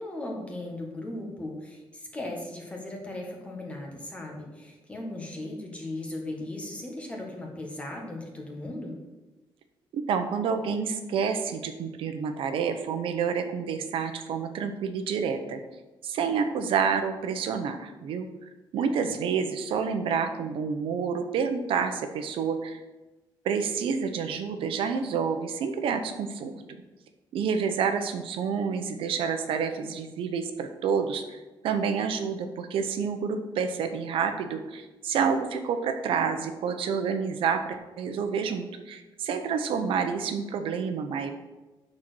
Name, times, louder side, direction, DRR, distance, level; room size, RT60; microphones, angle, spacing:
voice 1, 0.0-9.0, left 1 dB, 15° left, 0 dB, 1.6 m, -37 dB
voice 2, 9.9-15.6 16.0-18.3 18.7-22.8 23.4-26.5 27.3-41.3, right 6 dB, 85° right, 7 dB, 0.9 m, -28 dB
8.9 x 4.5 x 6.2 m, 1.1 s
cardioid pair, 175°, 9 cm